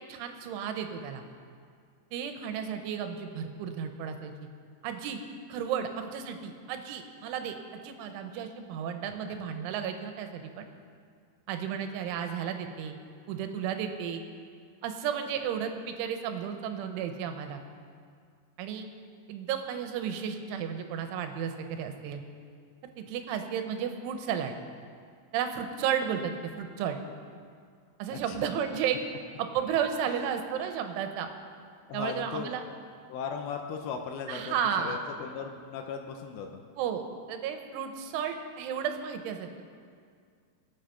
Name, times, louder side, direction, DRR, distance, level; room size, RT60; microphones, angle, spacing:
voice 1, 0.1-1.2 2.1-4.3 4.8-5.2 5.5-7.6 7.8-10.7 11.5-13.0 13.3-14.2 14.8-17.6 18.6-18.9 19.3-22.2 22.8-24.5 25.3-27.0 28.0-29.0 29.4-31.3 31.9-32.6 34.3-35.0 36.8-39.6, right 8 dB, 85° right, 6 dB, 3.3 m, -33 dB
voice 2, 30.1-30.5 31.9-32.8 33.1-36.6, left 6 dB, 80° left, 4 dB, 2.9 m, -38 dB
22.5 x 8.5 x 5.8 m, 2.2 s
omnidirectional pair, 5.5 m